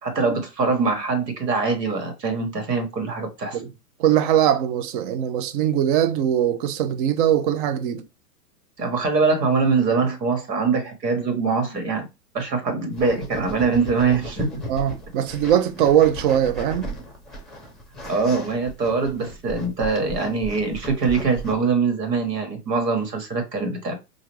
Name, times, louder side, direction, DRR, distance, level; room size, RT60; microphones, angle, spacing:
voice 1, 0.0-3.6 8.8-12.0 12.3-14.5 18.1-23.9, right 4 dB, 80° right, 1.5 m, -23 dB
voice 2, 4.0-8.0 14.7-17.0, right 10 dB, 35° right, 0.5 m, -21 dB
sound 1, 12.9-21.5, equal, ahead, 0.9 m, -36 dB
4.8 x 2.5 x 3.1 m
hypercardioid pair, 110°, 47 cm